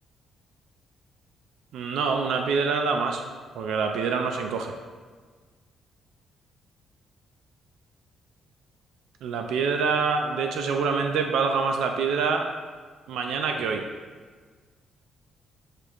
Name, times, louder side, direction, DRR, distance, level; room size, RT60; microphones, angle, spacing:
voice 1, 1.7-3.2 3.6-4.7 9.2-12.5 13.1-13.8, right 5 dB, 85° right, 3 dB, 0.3 m, -25 dB
6.6 x 2.4 x 3.0 m, 1.5 s
cardioid pair, 130°, 0 cm